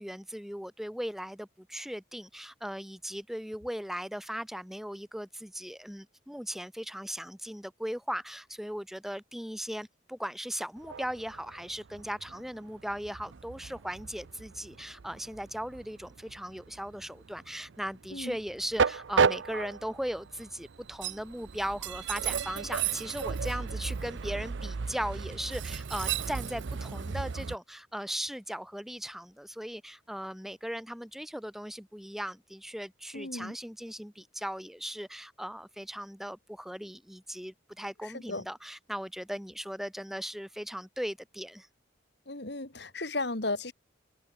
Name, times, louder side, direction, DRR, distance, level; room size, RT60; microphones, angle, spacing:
voice 1, 0.0-41.7, equal, ahead, 0.9 m, -38 dB
Train, 10.8-27.6, right 6 dB, 70° right, 0.6 m, -34 dB
voice 2, 33.1-33.5 38.0-38.4 42.3-43.7, left 2 dB, 55° left, 2.4 m, -35 dB
open air
head